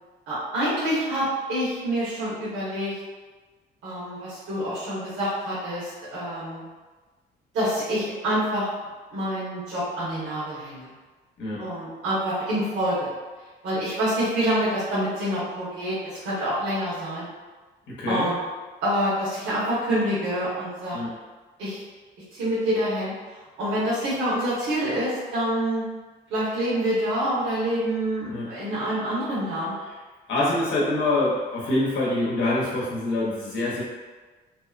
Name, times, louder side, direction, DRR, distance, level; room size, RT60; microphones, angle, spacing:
voice 1, 0.3-3.0 3.8-6.6 7.5-8.7 9.1-10.9 11.6-13.1 13.6-17.3 18.1-18.4 18.8-21.0 21.6-21.8 22.3-23.1 23.6-25.8 26.3-29.7, equal, 80° right, -11 dB, 1.0 m, -27 dB
voice 2, 11.4-11.7 17.9-18.3 20.9-21.1 28.3-28.5 29.8-29.9 30.3-33.8, left 2 dB, 70° left, -5 dB, 0.7 m, -25 dB
2.7 x 2.1 x 2.4 m, 1.3 s
cardioid pair, 90°, 20 cm